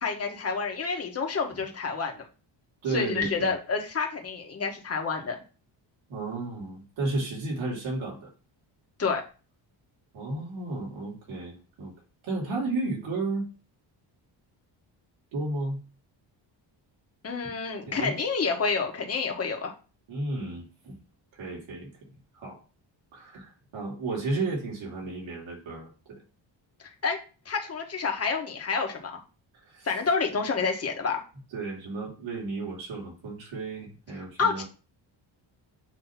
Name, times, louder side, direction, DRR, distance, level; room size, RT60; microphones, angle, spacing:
voice 1, 0.0-2.2 2.9-5.4 9.0-9.2 17.2-19.7 27.0-27.2 27.4-29.2 29.8-31.2 34.4-34.6, left 5 dB, 30° left, 2 dB, 1.5 m, -28 dB
voice 2, 2.8-3.5 6.1-8.3 10.1-11.9 12.2-13.5 15.3-15.8 17.9-18.2 20.1-21.0 21.3-21.9 22.3-22.6 23.1-26.2 29.6-29.9 31.5-34.6, right 2 dB, 85° right, -3 dB, 3.3 m, -33 dB
7.7 x 3.1 x 5.9 m, 0.35 s
cardioid pair, 140°, 45 cm